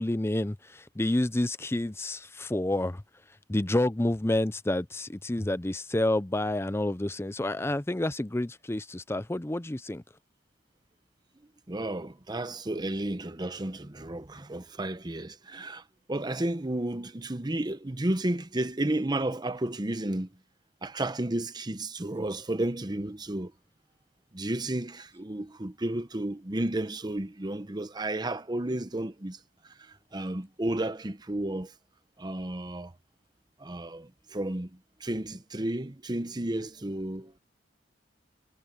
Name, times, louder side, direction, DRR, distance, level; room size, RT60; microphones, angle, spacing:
voice 1, 0.0-3.0 3.5-10.0, left 1 dB, 15° left, 0.6 m, -29 dB
voice 2, 11.7-20.3 20.8-23.5 24.3-29.4 29.6-31.7 32.2-32.9 33.6-37.3, right 1 dB, 25° right, 0.9 m, -32 dB
head